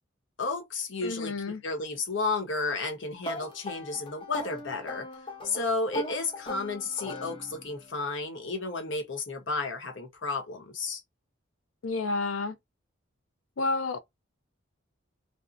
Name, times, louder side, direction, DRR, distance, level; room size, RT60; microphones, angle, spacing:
voice 1, 0.4-1.3 1.6-5.1 5.4-11.0, left 3 dB, 65° left, 0.9 m, -32 dB
voice 2, 1.0-1.6 11.8-12.6 13.6-14.0, left 3 dB, 85° left, 0.5 m, -30 dB
sound 1, 3.2-7.9, left 1 dB, 25° left, 0.6 m, -39 dB
2.6 x 2.0 x 2.4 m
head